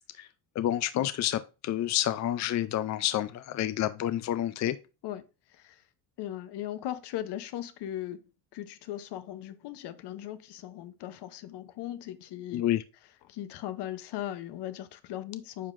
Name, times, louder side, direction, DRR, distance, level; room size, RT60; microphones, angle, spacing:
voice 1, 0.6-4.8 12.5-12.8, left 12 dB, 40° left, 0.5 m, -29 dB
voice 2, 5.0-5.8 6.2-8.2 8.5-12.6 13.3-15.7, left 12 dB, 70° left, 0.9 m, -38 dB
9.6 x 5.6 x 2.5 m
cardioid pair, 110°, 42 cm